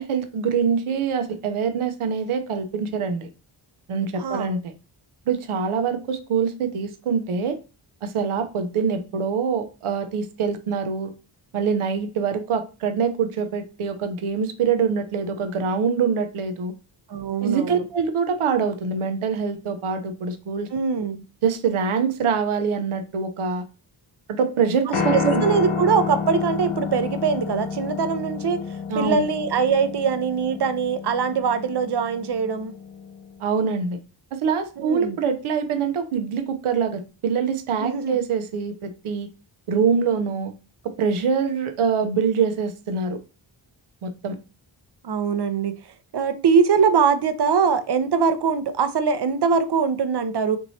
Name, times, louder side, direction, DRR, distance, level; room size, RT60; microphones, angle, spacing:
voice 1, 0.0-3.3 3.9-4.7 5.3-7.6 8.0-11.1 11.5-16.7 17.4-20.7 21.4-23.6 24.3-25.4 28.9-29.3 33.4-34.0 34.3-39.3 39.7-40.5 41.0-43.2 44.0-44.4, right 6 dB, 85° right, 0.8 m, -24 dB
voice 2, 4.2-4.6 17.1-17.8 20.7-21.2 25.1-28.6 28.9-32.7 34.8-35.2 37.8-38.2 45.0-45.7 46.1-50.6, right 6 dB, 55° right, 0.7 m, -22 dB
Piano, 24.9-33.2, left 5 dB, 90° left, 1.1 m, -30 dB
4.5 x 3.1 x 2.7 m
cardioid pair, 65°, 49 cm